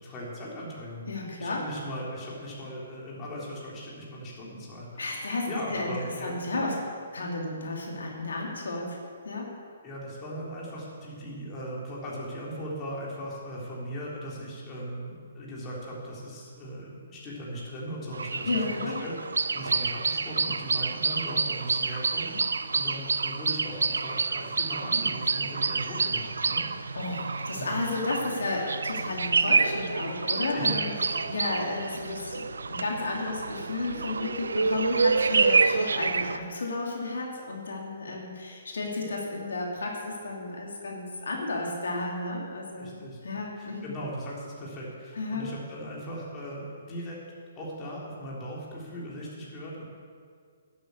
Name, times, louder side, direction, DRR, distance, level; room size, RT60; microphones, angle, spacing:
voice 1, 0.0-1.1 1.4-5.0 5.5-6.4 9.8-19.3 19.5-22.5 22.7-27.0 27.5-27.8 30.5-30.8 31.1-31.4 42.8-43.2 43.6-47.2 47.6-49.8, equal, 20° left, -5 dB, 3.5 m, -38 dB
voice 2, 1.1-1.6 5.0-6.8 7.1-8.9 9.2-9.4 18.5-19.0 26.9-44.0 45.2-45.5, left 2 dB, 85° left, -1 dB, 2.6 m, -33 dB
sound 1, 18.1-36.4, right 4 dB, 90° right, 0.5 m, -28 dB
11.5 x 8.5 x 8.3 m, 2.1 s
hypercardioid pair, 150°, 0 cm